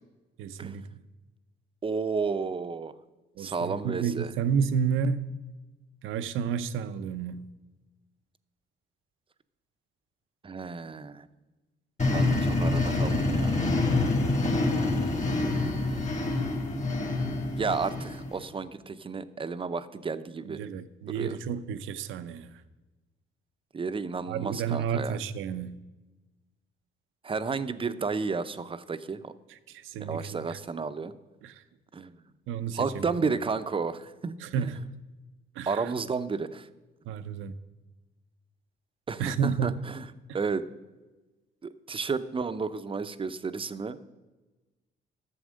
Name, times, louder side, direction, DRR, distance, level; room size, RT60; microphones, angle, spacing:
voice 1, 0.4-1.0 3.4-5.3 6.0-7.5 20.4-22.5 24.3-25.8 29.5-30.6 31.4-31.6 32.5-33.3 34.4-34.8 35.6-35.9 37.1-37.6 39.2-39.9, right 7 dB, 85° right, 0.7 m, -31 dB
voice 2, 1.8-2.9 3.4-4.3 10.4-11.2 12.1-13.5 15.9-16.1 17.6-20.6 21.1-21.4 23.7-25.2 27.2-29.3 30.0-31.1 31.9-32.1 32.7-34.7 35.7-36.7 39.1-40.0 40.3-40.6 41.6-44.0, right 5 dB, 25° right, 0.6 m, -32 dB
sound 1, 12.0-18.4, left 2 dB, 35° left, 2.3 m, -26 dB
11.5 x 7.1 x 6.4 m
cardioid pair, 90°, 20 cm